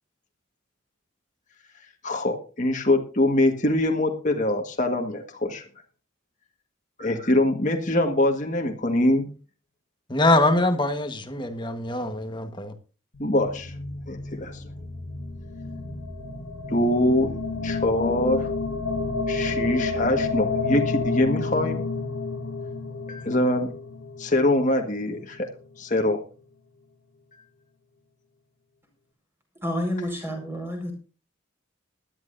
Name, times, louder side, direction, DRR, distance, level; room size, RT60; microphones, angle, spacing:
voice 1, 2.0-5.6 7.0-9.3 13.2-13.7 14.1-14.6 16.7-17.3 17.6-18.5 19.3-21.8 23.1-23.7 24.2-25.5 25.8-26.2, left 1 dB, 40° left, 1.7 m, -23 dB
voice 2, 10.1-12.7, left 2 dB, 25° left, 1.4 m, -23 dB
sound 1, 13.1-25.4, left 3 dB, 80° left, 1.5 m, -30 dB
voice 3, 29.6-30.9, equal, 10° right, 4.9 m, -29 dB
20.0 x 12.5 x 2.7 m
head